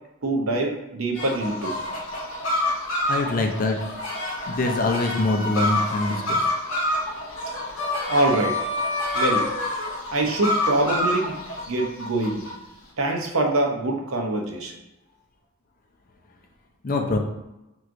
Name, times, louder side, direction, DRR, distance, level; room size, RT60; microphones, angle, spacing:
voice 1, 0.2-1.7 8.1-8.6 9.1-9.5 10.1-11.4 11.7-12.5 13.0-14.7, right 2 dB, 70° right, 1 dB, 0.7 m, -24 dB
sound 1, 1.1-12.5, left 1 dB, 60° left, 1.1 m, -27 dB
voice 2, 3.1-3.8 4.5-6.5 16.8-17.2, left 2 dB, 40° left, 2 dB, 0.5 m, -24 dB
4.6 x 3.1 x 2.6 m, 0.95 s
head